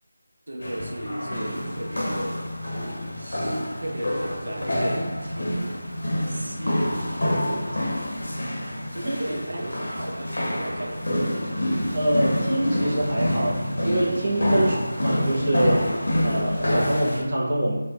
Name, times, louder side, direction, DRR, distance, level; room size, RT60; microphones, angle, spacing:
voice 1, 0.5-2.5 3.2-5.8 6.2-6.9 8.9-11.1 14.5-14.8, right 1 dB, 65° right, -1 dB, 0.7 m, -35 dB
sound 1, 0.6-17.2, equal, 60° left, 0.8 m, -27 dB
voice 2, 9.0-9.6 11.9-14.8 15.0-15.9 16.2-17.8, right 1 dB, 20° right, -8 dB, 0.5 m, -24 dB
5.0 x 2.1 x 2.4 m, 1.1 s
figure-of-eight pair, 180°, 0 cm